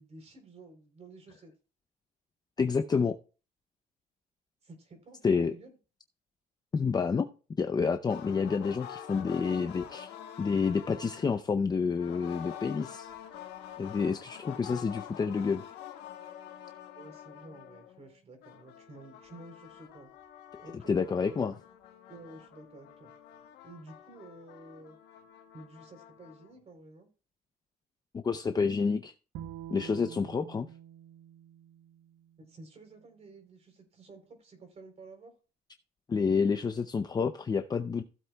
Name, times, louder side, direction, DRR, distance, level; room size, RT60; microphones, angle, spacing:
voice 1, 0.0-1.5 4.6-5.7 17.0-20.1 20.6-21.5 22.1-23.1 23.6-25.0 25.5-27.1 32.4-35.3, right 2 dB, 40° right, 3.7 m, -51 dB
voice 2, 2.6-3.1 5.2-5.5 6.7-7.3 7.6-10.1 10.4-13.1 13.8-15.6 20.9-21.5 28.1-29.1 29.7-30.7 36.1-38.0, left 5 dB, 25° left, 0.6 m, -29 dB
sound 1, 8.1-11.5 12.0-18.1 18.4-26.5, left 10 dB, 85° left, 1.7 m, -47 dB
Bowed string instrument, 29.3-32.6, right 11 dB, 85° right, 0.9 m, -47 dB
16.0 x 7.8 x 2.3 m
cardioid pair, 110°, 17 cm